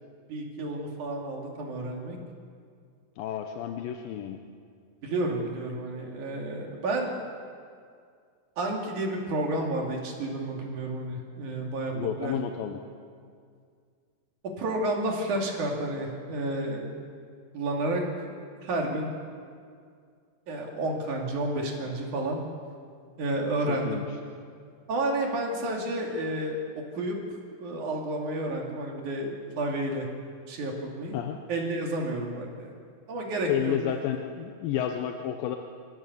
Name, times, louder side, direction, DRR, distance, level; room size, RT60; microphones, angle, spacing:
voice 1, 0.3-2.2 5.0-7.1 8.6-11.9 12.2-12.4 14.6-16.9 17.5-18.0 18.6-19.1 20.5-22.4 23.2-24.0 24.9-26.6 26.9-27.2 27.6-30.1 30.5-31.2 31.5-32.7 33.1-34.1, right 2 dB, 60° right, 0 dB, 3.8 m, -30 dB
voice 2, 3.2-4.4 11.9-12.8 23.7-24.0 31.1-31.4 33.5-35.6, left 10 dB, 85° left, 5 dB, 2.6 m, -31 dB
26.5 x 14.5 x 7.0 m, 2.2 s
omnidirectional pair, 4.0 m